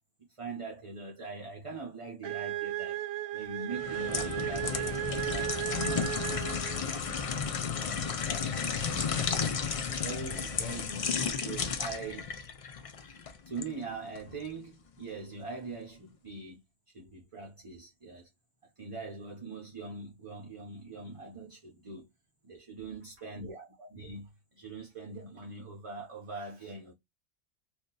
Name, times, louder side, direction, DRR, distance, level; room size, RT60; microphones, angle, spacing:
voice 1, 0.4-3.0 3.3-7.4 7.8-9.5 9.8-11.1 11.4-12.3 13.0-13.2 13.5-16.6 16.9-18.3 18.6-22.1 22.4-26.9, right 3 dB, 35° right, 0.7 m, -43 dB
sound 1, 2.2-7.1, right 14 dB, 85° right, 0.9 m, -35 dB
sound 2, 3.7-13.7 14.1-14.3, left 6 dB, 65° left, 0.3 m, -33 dB
2.8 x 2.4 x 3.7 m
omnidirectional pair, 1.2 m